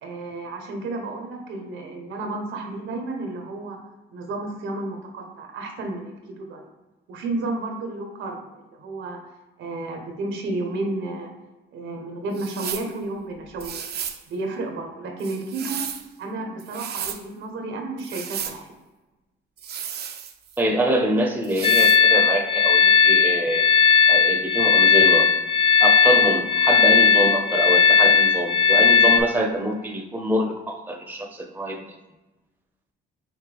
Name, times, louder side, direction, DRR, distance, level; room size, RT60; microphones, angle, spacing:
voice 1, 0.0-3.8 4.1-6.7 7.1-9.2 9.6-11.3 11.7-13.8 14.3-15.9 16.2-18.7, right 2 dB, 85° right, 3 dB, 1.0 m, -32 dB
sound 1, 12.3-12.9 13.6-14.2 15.2-16.1 16.6-17.2 18.0-18.6 19.6-20.6 21.4-22.0, right 8 dB, 55° right, 0.5 m, -33 dB
voice 2, 20.6-23.6 24.1-25.3 25.8-31.8, right 1 dB, 10° right, 2 dB, 0.7 m, -25 dB
sound 2, 21.6-29.2, left 5 dB, 25° left, 0.4 m, -17 dB
5.8 x 2.7 x 3.4 m, 1.1 s
cardioid pair, 90°, 20 cm